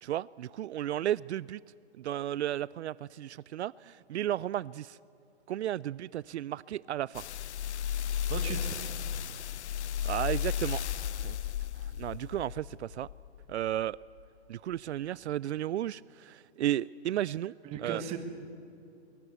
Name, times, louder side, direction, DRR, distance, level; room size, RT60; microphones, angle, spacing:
voice 1, 0.0-1.6 2.0-5.0 5.5-7.2 10.0-11.4 11.8-13.1 13.5-14.0 14.5-17.6 17.8-18.0, right 12 dB, 75° right, 21 dB, 0.5 m, -34 dB
sound 1, 7.1-13.6 14.2-14.3, left 9 dB, 75° left, 0.6 m, -34 dB
voice 2, 8.3-8.8 17.6-18.2, right 8 dB, 20° right, 7 dB, 1.5 m, -36 dB
22.0 x 20.0 x 8.0 m, 2.7 s
hypercardioid pair, 160°, 34 cm